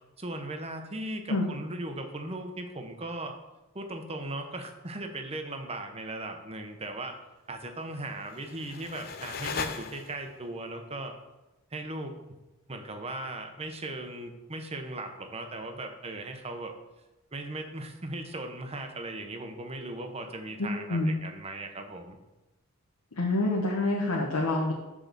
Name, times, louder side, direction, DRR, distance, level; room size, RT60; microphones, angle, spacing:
voice 1, 0.2-3.4 3.7-7.2 7.5-11.1 11.7-12.2 12.7-16.8 17.3-22.2, right 2 dB, 30° right, 5 dB, 0.9 m, -38 dB
sound 1, 8.1-10.5, left 6 dB, 45° left, 0.6 m, -38 dB
voice 2, 20.6-21.1 23.1-24.7, left 2 dB, 85° left, -2 dB, 1.1 m, -27 dB
6.2 x 4.9 x 6.8 m, 1.0 s
head